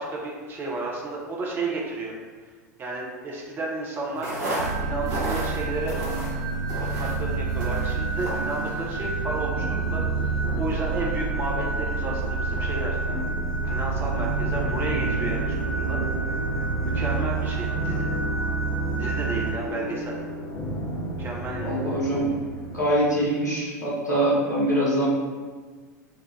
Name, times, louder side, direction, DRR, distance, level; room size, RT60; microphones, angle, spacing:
voice 1, 0.0-2.1 2.8-4.3 4.8-6.0 6.8-13.0 13.7-16.0 16.9-18.1 19.0-20.1 21.2-21.8, right 2 dB, 25° right, -2 dB, 0.6 m, -32 dB
sound 1, 4.1-9.2, right 1 dB, 60° right, 1.2 m, -34 dB
sound 2, 4.6-19.6, right 4 dB, 80° right, 0.4 m, -28 dB
sound 3, 9.5-23.2, equal, 50° left, 0.8 m, -35 dB
voice 2, 21.6-22.4 22.6-25.1, right 1 dB, 80° left, -7 dB, 1.2 m, -24 dB
4.6 x 2.4 x 3.1 m, 1.4 s
figure-of-eight pair, 85°, 9 cm